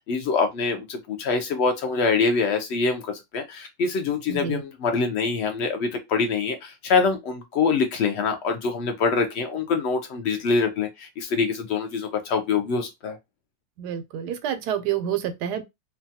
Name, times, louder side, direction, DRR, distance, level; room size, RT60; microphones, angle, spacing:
voice 1, 0.1-13.2, left 4 dB, 75° left, 0.6 m, -25 dB
voice 2, 4.3-4.6 13.8-15.6, right 10 dB, 85° right, 1.2 m, -28 dB
2.8 x 2.3 x 2.7 m
omnidirectional pair, 1.7 m